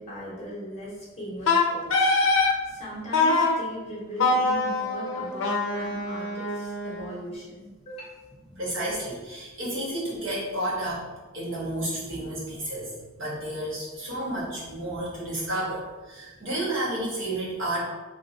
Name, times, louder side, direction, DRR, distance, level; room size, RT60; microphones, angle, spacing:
voice 1, 0.0-8.1 14.1-14.4, equal, 30° left, -5 dB, 1.1 m, -39 dB
Wind instrument woodwind instrument, 1.5-2.6 3.1-3.6 4.2-7.2, left 3 dB, 60° left, 0.5 m, -24 dB
voice 2, 8.5-11.0 11.3-17.8, right 1 dB, 65° right, -6 dB, 1.2 m, -31 dB
2.9 x 2.6 x 4.0 m, 1.2 s
head